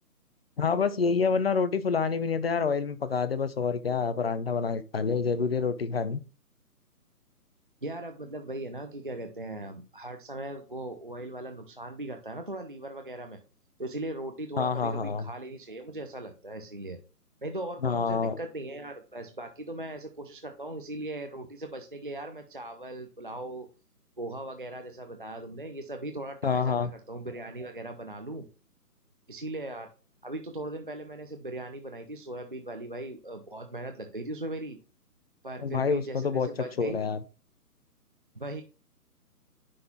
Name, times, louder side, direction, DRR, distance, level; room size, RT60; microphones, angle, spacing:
voice 1, 0.6-6.2 14.6-15.3 17.8-18.4 26.4-26.9 35.6-36.5 36.8-37.2, left 5 dB, 40° left, 0.5 m, -27 dB
voice 2, 7.8-13.4 13.8-17.0 17.4-23.7 24.2-28.5 29.3-29.9 30.2-34.8 35.4-37.0 38.3-38.6, right 1 dB, 35° right, 0.4 m, -39 dB
9.5 x 3.8 x 2.8 m
figure-of-eight pair, 150°, 47 cm